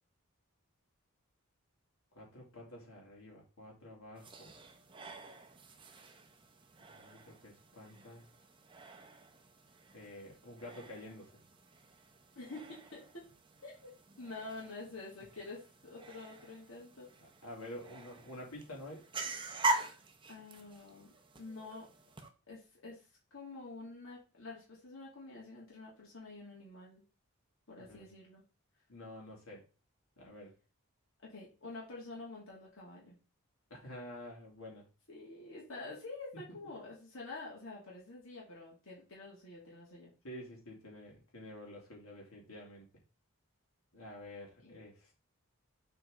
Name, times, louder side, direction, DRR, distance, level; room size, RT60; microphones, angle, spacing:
voice 1, 2.1-4.5 6.9-8.2 9.9-11.3 17.2-19.0 27.9-28.1 28.9-29.6 30.2-30.5 33.7-34.8 40.2-42.8 43.9-45.1, left 1 dB, 85° left, -2 dB, 2.9 m, -49 dB
sound 1, 4.2-22.3, right 2 dB, 25° right, 0.8 m, -43 dB
voice 2, 12.4-13.0 13.6-13.9 14.2-17.1 20.3-21.9 22.5-27.0 27.7-28.4 31.2-33.2 35.1-40.1 44.6-44.7, left 3 dB, 65° left, -5 dB, 2.5 m, -48 dB
6.9 x 4.4 x 3.8 m, 0.33 s
head